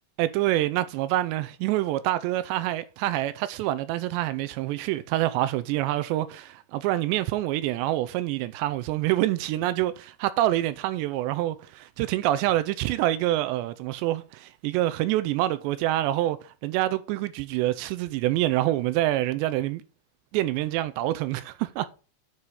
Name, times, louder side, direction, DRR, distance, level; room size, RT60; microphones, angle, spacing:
voice 1, 0.2-19.8 20.3-21.9, right 15 dB, 85° right, 2.8 m, -26 dB
9.8 x 4.8 x 5.5 m
omnidirectional pair, 5.1 m